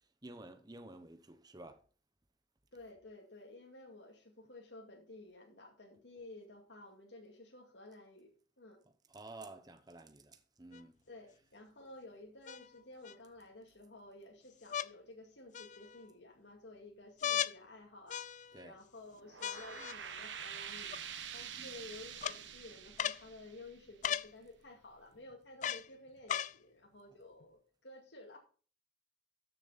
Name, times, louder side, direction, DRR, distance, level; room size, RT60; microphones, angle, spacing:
voice 1, 0.2-1.8 9.1-10.9 18.5-18.8 21.6-21.8, right 2 dB, 20° right, 0.9 m, -51 dB
voice 2, 2.7-8.8 11.1-28.4, left 2 dB, 75° left, 2.2 m, -54 dB
sound 1, 10.7-10.8 12.5-13.2 14.7-14.9 15.5-16.1 17.2-17.6 18.1-18.6 19.4-20.0 20.9-21.0 22.2-22.4 23.0-23.2 24.0-24.3 25.6-25.9 26.3-26.5 27.4-27.5, left 9 dB, 40° left, 0.4 m, -37 dB
sound 2, 19.1-24.4, right 8 dB, 85° right, 1.2 m, -47 dB
13.0 x 6.9 x 4.0 m
head